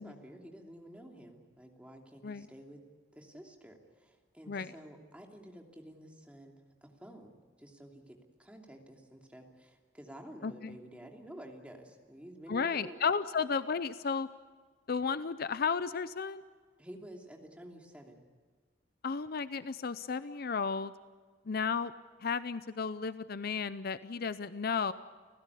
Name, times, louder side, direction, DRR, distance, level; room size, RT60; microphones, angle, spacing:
voice 1, 0.0-2.8 3.1-13.0 16.8-18.2, equal, 5° right, 1 dB, 2.8 m, -51 dB
voice 2, 10.4-10.8 12.5-14.3 14.9-16.4 19.0-20.9 21.5-21.9 22.2-24.9, left 5 dB, 50° left, 14 dB, 0.6 m, -33 dB
30.0 x 16.0 x 8.3 m, 1.5 s
head